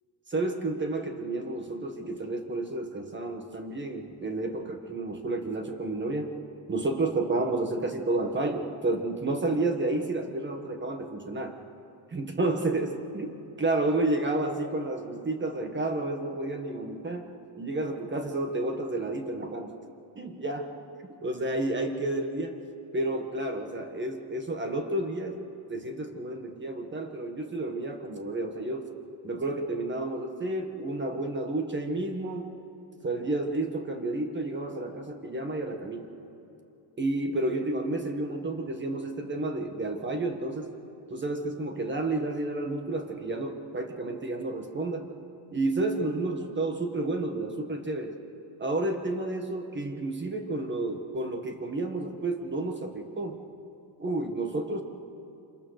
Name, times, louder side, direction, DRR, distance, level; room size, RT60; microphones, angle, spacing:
voice 1, 0.3-6.3 6.7-11.6 12.1-17.3 17.5-19.7 20.1-20.7 21.2-22.6 22.9-25.4 25.7-28.9 29.2-32.5 33.0-36.1 37.0-40.7 41.1-45.1 45.5-48.1 48.6-53.4 54.0-54.8, right 2 dB, 25° right, 5 dB, 1.6 m, -31 dB
26.5 x 21.5 x 6.6 m, 2.7 s
cardioid pair, 130°, 47 cm